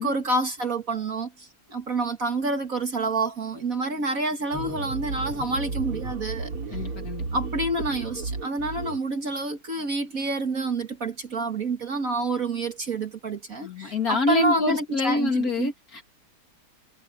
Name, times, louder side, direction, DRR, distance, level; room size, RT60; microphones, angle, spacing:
voice 1, 0.0-6.8 7.3-15.7, right 2 dB, 40° right, 2.0 m, -28 dB
sound 1, 4.5-9.0, right 3 dB, 80° right, 4.8 m, -33 dB
voice 2, 6.7-7.3 13.6-16.0, left 2 dB, 45° left, 2.5 m, -26 dB
omnidirectional pair, 2.4 m